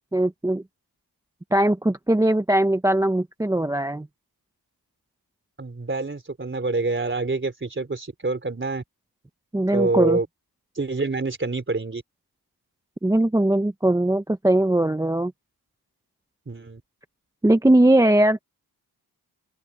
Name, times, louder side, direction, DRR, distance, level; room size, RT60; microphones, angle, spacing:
voice 1, 0.1-0.6 1.5-4.1 9.5-10.2 13.0-15.3 17.4-18.4, right 1 dB, 10° right, 0.6 m, -20 dB
voice 2, 5.6-8.8 9.7-10.3 10.8-12.0 16.5-16.8, right 3 dB, 30° right, 3.8 m, -26 dB
open air
wide cardioid pair, 95°, 39 cm